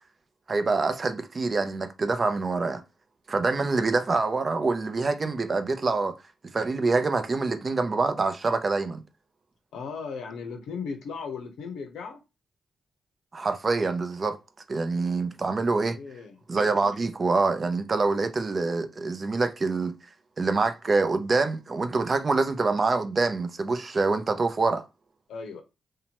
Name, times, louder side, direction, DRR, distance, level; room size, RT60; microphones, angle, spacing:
voice 1, 0.5-2.8 3.3-6.1 6.5-9.0 13.3-14.4 14.7-16.0 16.5-19.9 20.4-24.9, right 3 dB, 45° right, 0.5 m, -25 dB
voice 2, 9.7-12.2 15.9-16.4 25.3-25.6, left 5 dB, 85° left, 0.6 m, -36 dB
2.8 x 2.1 x 2.9 m
supercardioid pair, 55°, 0 cm